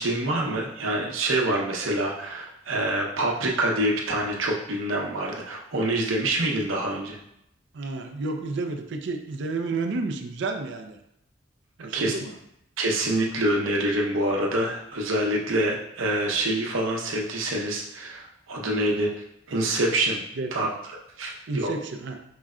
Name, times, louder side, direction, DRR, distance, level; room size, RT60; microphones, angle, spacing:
voice 1, 0.0-7.2 11.9-12.1 12.8-19.1 19.5-20.2 20.5-20.7 21.2-21.7, right 1 dB, 90° right, -1 dB, 0.7 m, -26 dB
voice 2, 7.7-11.0 11.8-12.4 20.4-20.8 21.5-22.2, right 3 dB, 60° right, 5 dB, 0.4 m, -31 dB
4.7 x 2.1 x 3.6 m, 0.78 s
head